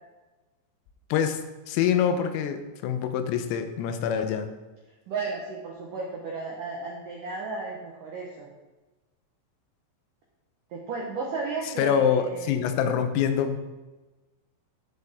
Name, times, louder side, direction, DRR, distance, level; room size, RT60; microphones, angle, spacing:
voice 1, 1.1-1.4 1.7-4.5 11.8-13.6, left 8 dB, 85° left, 8 dB, 3.5 m, -25 dB
voice 2, 5.1-8.5 10.7-12.6, right 4 dB, 80° right, -2 dB, 1.9 m, -34 dB
16.0 x 6.7 x 3.6 m, 1.2 s
omnidirectional pair, 5.8 m